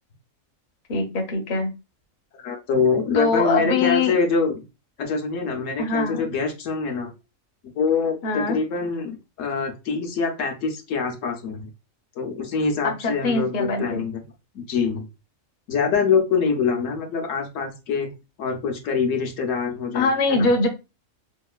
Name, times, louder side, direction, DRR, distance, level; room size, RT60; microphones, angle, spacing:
voice 1, 0.9-1.7 3.1-4.1 5.8-6.3 8.2-8.6 13.0-14.0 19.9-20.7, left 3 dB, 45° left, 0.7 m, -22 dB
voice 2, 2.3-4.5 5.0-7.1 7.7-11.7 12.2-14.2 14.5-15.0 15.7-18.1 18.4-20.5, left 5 dB, 70° left, 1.0 m, -24 dB
2.9 x 2.4 x 2.3 m
omnidirectional pair, 1.4 m